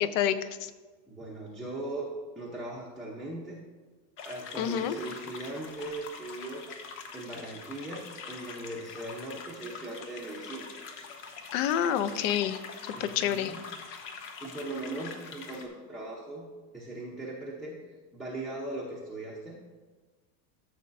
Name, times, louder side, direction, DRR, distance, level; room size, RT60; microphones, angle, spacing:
voice 1, 0.0-0.7 4.6-5.0 11.5-12.6 13.0-13.5, left 9 dB, 55° left, 13 dB, 0.6 m, -28 dB
voice 2, 1.1-2.1 2.4-3.6 4.2-6.6 7.1-10.7 12.9-13.6 14.4-16.5 16.7-17.8 18.1-19.6, right 2 dB, ahead, -7 dB, 0.6 m, -39 dB
sound 1, 4.2-15.7, left 5 dB, 75° left, 1.2 m, -44 dB
13.5 x 6.6 x 2.6 m, 1.3 s
supercardioid pair, 155°, 47 cm